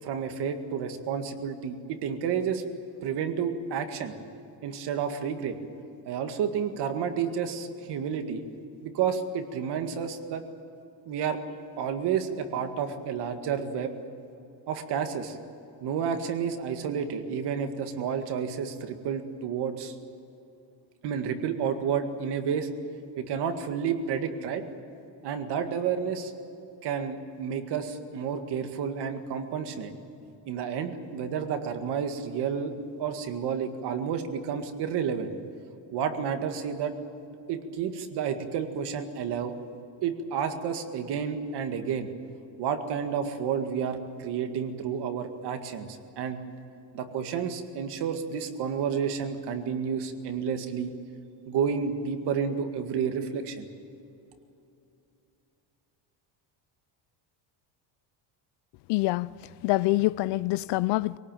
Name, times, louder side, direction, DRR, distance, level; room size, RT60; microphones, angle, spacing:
voice 1, 0.0-2.6 3.0-4.1 4.6-5.6 6.1-8.4 8.8-10.4 11.1-11.4 11.8-13.9 14.7-15.4 15.8-19.9 21.0-22.7 23.2-24.6 25.2-26.3 26.8-29.9 30.5-32.7 33.0-35.3 35.9-36.9 37.5-39.5 40.0-42.1 42.6-46.4 46.9-50.9 51.5-53.7, right 7 dB, 55° right, 2.0 m, -30 dB
voice 2, 58.9-59.3 59.6-61.2, left 19 dB, 60° left, 0.5 m, -25 dB
23.0 x 18.5 x 9.0 m
cardioid pair, 155°, 48 cm